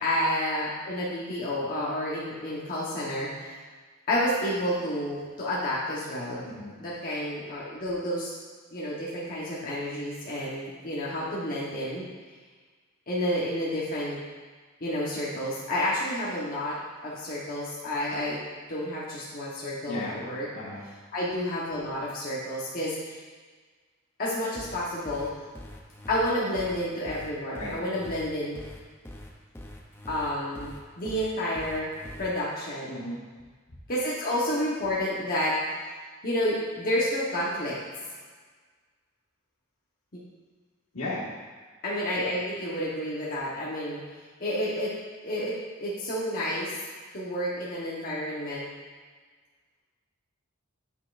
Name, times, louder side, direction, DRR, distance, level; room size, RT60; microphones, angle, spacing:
voice 1, 0.0-3.6 4.1-6.5 6.8-8.4 8.7-12.1 13.1-14.2 14.8-16.8 17.0-18.4 18.7-20.5 21.1-23.2 24.2-25.3 26.1-28.6 30.1-30.7 31.0-31.9 32.2-33.0 33.9-35.5 36.2-37.7 41.8-44.0 44.4-44.9 45.2-45.5 45.8-46.8 47.1-48.7, left 1 dB, 40° left, -7 dB, 1.1 m, -30 dB
voice 2, 6.4-6.8 19.9-20.2 20.5-20.8 27.5-27.7 32.9-33.2 40.9-41.2, left 1 dB, 80° left, -6 dB, 1.8 m, -35 dB
sound 1, 24.5-32.3, left 1 dB, 10° left, 0.5 m, -43 dB
8.1 x 5.6 x 2.5 m, 1.5 s
head